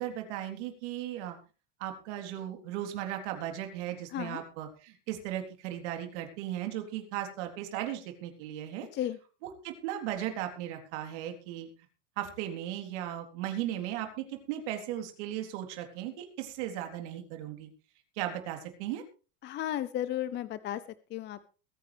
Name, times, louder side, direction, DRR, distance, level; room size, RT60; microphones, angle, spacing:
voice 1, 0.0-1.4 1.8-8.9 9.4-11.7 12.2-17.7 18.2-19.0, right 12 dB, 70° right, 5 dB, 3.6 m, -36 dB
voice 2, 4.1-4.4 8.9-9.2 19.4-20.8 21.1-21.5, left 12 dB, 30° left, 15 dB, 0.6 m, -34 dB
22.0 x 9.5 x 3.4 m, 0.36 s
supercardioid pair, 135°, 36 cm